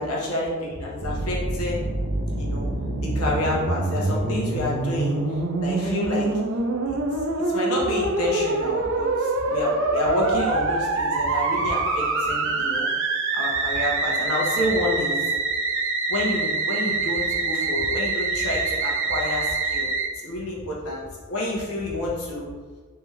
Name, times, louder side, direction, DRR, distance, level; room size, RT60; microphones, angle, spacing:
voice 1, 0.0-1.8 2.4-2.7 3.0-5.2 5.6-6.3 6.9-7.0 7.5-12.9 13.3-15.2 16.1-19.9 20.2-22.5, left 1 dB, 80° left, -3 dB, 1.0 m, -28 dB
Musical instrument, 1.0-20.1, right 3 dB, 60° right, 0.5 m, -25 dB
3.4 x 3.3 x 3.3 m, 1.5 s
head